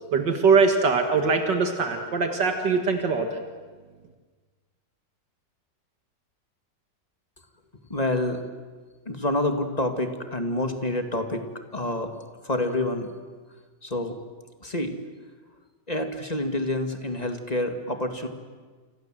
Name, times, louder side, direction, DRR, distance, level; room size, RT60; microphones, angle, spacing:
voice 1, 0.1-3.4, right 4 dB, 75° right, 5 dB, 2.4 m, -22 dB
voice 2, 7.9-8.4 9.1-12.1 12.4-13.1 13.8-14.2 14.6-15.0 15.9-18.3, left 1 dB, 20° left, 6 dB, 2.2 m, -27 dB
29.5 x 26.0 x 7.7 m, 1.5 s
omnidirectional pair, 1.9 m